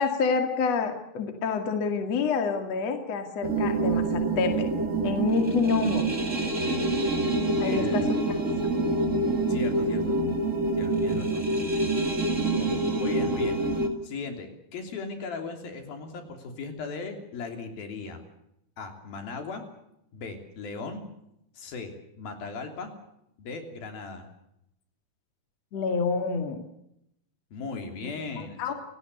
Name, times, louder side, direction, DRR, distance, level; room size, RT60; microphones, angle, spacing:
voice 1, 0.0-4.7 5.0-6.0 7.6-8.0 12.6-12.8 25.7-26.6 28.4-28.7, left 5 dB, 50° left, 5 dB, 3.1 m, -27 dB
sound 1, 3.4-13.9, right 2 dB, 25° right, 2.2 m, -26 dB
voice 2, 7.6-8.1 9.5-10.2 10.7-11.5 12.6-13.6 14.0-18.2 18.8-19.7 20.1-21.0 21.5-22.9 23.4-24.3 27.5-28.7, left 4 dB, 70° left, 5 dB, 5.0 m, -38 dB
29.5 x 17.5 x 6.9 m, 0.79 s
omnidirectional pair, 4.3 m